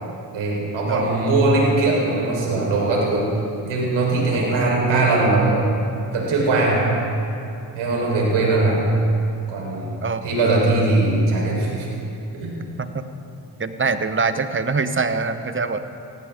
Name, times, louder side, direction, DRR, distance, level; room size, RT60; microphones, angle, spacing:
voice 1, 0.3-3.3 3.6-5.6 6.1-6.9 7.7-8.9 9.5-9.9 10.2-11.9 12.3-12.6, right 2 dB, 75° right, -3 dB, 4.7 m, -20 dB
voice 2, 4.3-4.7 10.0-10.2 12.8-13.0 13.6-15.8, right 4 dB, 25° right, 10 dB, 1.1 m, -24 dB
19.5 x 16.5 x 3.8 m, 2.8 s
supercardioid pair, 60°, 48 cm